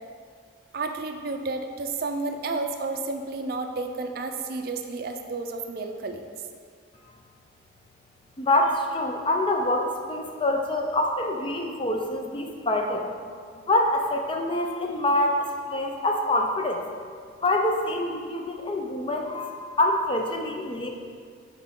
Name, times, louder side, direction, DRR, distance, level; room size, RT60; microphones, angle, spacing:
voice 1, 0.7-6.2, right 3 dB, 50° right, 5 dB, 0.4 m, -31 dB
voice 2, 8.4-13.2 13.7-16.8 17.4-20.9, left 1 dB, 25° left, 2 dB, 0.4 m, -25 dB
5.8 x 4.7 x 3.6 m, 2.1 s
head